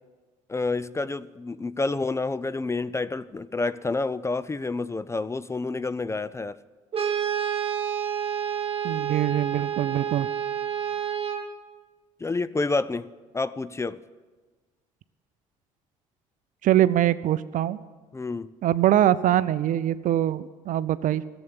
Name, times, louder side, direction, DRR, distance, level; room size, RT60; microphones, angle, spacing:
voice 1, 0.5-6.6 12.2-13.1 13.3-14.0 18.1-18.5, left 3 dB, 15° left, 16 dB, 0.4 m, -28 dB
Brass instrument, 6.9-11.5, right 9 dB, 35° right, 1.8 m, -29 dB
voice 2, 8.8-10.3 16.6-17.8 18.6-21.2, right 12 dB, 55° right, 16 dB, 0.6 m, -23 dB
14.0 x 8.0 x 8.9 m, 1.4 s
hypercardioid pair, 65°, 17 cm